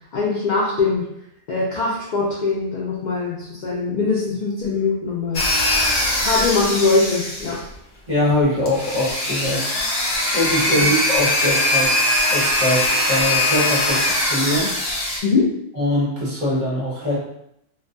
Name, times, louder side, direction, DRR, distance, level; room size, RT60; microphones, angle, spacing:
voice 1, 0.1-1.1 1.5-5.5 6.2-7.6 10.7-10.9 15.2-15.5, left 4 dB, 85° left, -5 dB, 0.4 m, -22 dB
sound 1, 5.3-7.7 8.7-15.2, left 1 dB, 60° left, 0.8 m, -21 dB
voice 2, 8.1-9.7 10.3-11.9 12.3-14.7 15.7-17.2, left 1 dB, 45° right, -7 dB, 0.8 m, -22 dB
2.3 x 2.2 x 2.5 m, 0.76 s
omnidirectional pair, 1.3 m